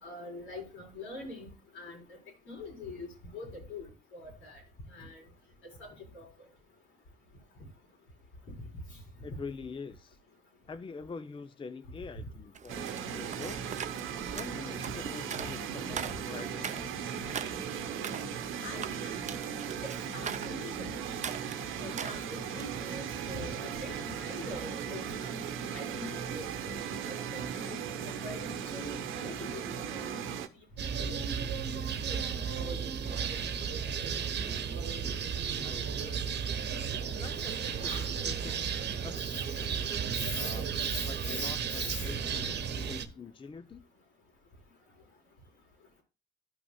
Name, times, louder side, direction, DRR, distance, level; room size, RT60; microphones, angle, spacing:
voice 1, 0.0-2.0 2.5-4.6 4.9-5.2 5.8-5.9 6.1-6.3 18.6-19.2 19.8-20.9 21.8-25.4 25.7-26.4 27.1-30.3 30.9-31.5 32.1-32.2 32.5-32.8 33.1-33.3 35.7-36.1 37.8-38.1 40.1-40.6 40.9-42.1, left 2 dB, 80° left, 0 dB, 4.3 m, -43 dB
voice 2, 9.2-10.2 10.7-13.7 14.3-17.4 35.0-35.3 35.6-36.1 36.9-37.9 38.2-38.6 39.0-39.9 40.3-40.7 41.0-43.8, left 5 dB, 25° left, 10 dB, 0.6 m, -45 dB
sound 1, 12.5-22.8, right 7 dB, 35° right, 0.6 m, -42 dB
sound 2, 12.7-30.5, right 7 dB, 85° right, 1.0 m, -37 dB
sound 3, 30.8-43.0, right 7 dB, 60° right, 1.1 m, -34 dB
13.0 x 5.9 x 2.2 m, 0.30 s
cardioid pair, 90°, 20 cm